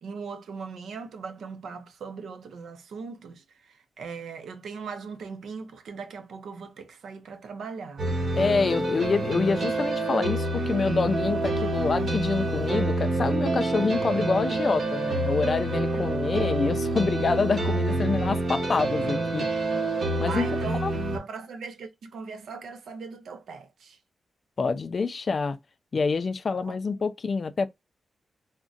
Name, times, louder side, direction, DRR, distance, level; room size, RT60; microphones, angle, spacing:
voice 1, 0.0-8.1 15.9-16.1 20.2-20.8 21.1-24.0 26.5-26.7, right 5 dB, 85° right, 0.6 m, -39 dB
sound 1, 8.0-21.2, right 2 dB, 60° right, 1.1 m, -27 dB
voice 2, 8.4-19.5 20.2-20.5 20.8-20.9 24.6-25.6 25.9-27.7, left 4 dB, 40° left, 0.4 m, -26 dB
3.6 x 2.1 x 2.4 m
wide cardioid pair, 125°, 0 cm